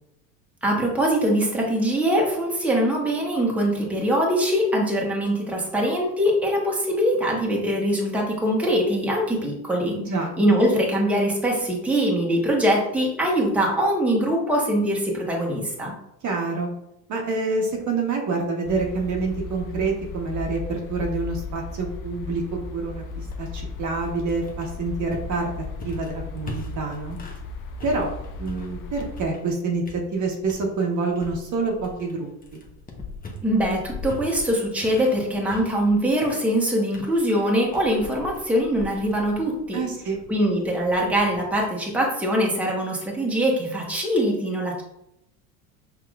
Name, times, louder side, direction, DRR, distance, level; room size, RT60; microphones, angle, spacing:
voice 1, 0.6-10.0 10.4-15.9 33.4-39.8 40.3-44.8, equal, 5° right, -2 dB, 1.2 m, -22 dB
voice 2, 10.0-10.6 16.2-16.7 17.1-25.5 25.8-27.2 27.8-28.1 28.4-29.8 30.1-32.6 39.7-40.2, right 3 dB, 40° right, 1 dB, 1.2 m, -27 dB
sound 1, 18.6-29.2, left 4 dB, 50° left, 0.7 m, -36 dB
sound 2, 23.1-27.5 27.8-29.6 29.8-30.7 31.2-41.6, left 2 dB, 20° left, 1.0 m, -42 dB
5.8 x 2.9 x 2.4 m, 0.82 s
hypercardioid pair, 85°, 43 cm